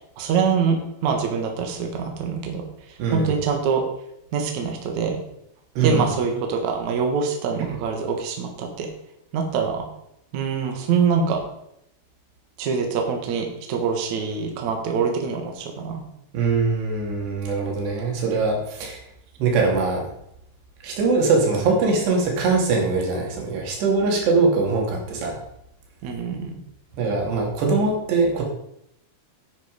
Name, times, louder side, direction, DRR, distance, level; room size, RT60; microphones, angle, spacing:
voice 1, 0.0-3.8 4.3-5.2 5.8-8.9 9.3-9.9 10.3-11.4 12.6-16.0 26.0-26.6, right 5 dB, 55° right, 3 dB, 2.6 m, -24 dB
voice 2, 3.0-3.3 5.8-6.0 16.3-19.0 19.4-20.0 20.8-25.4 27.0-28.4, right 4 dB, 85° right, 0 dB, 4.7 m, -22 dB
9.9 x 9.6 x 5.2 m, 0.78 s
omnidirectional pair, 4.7 m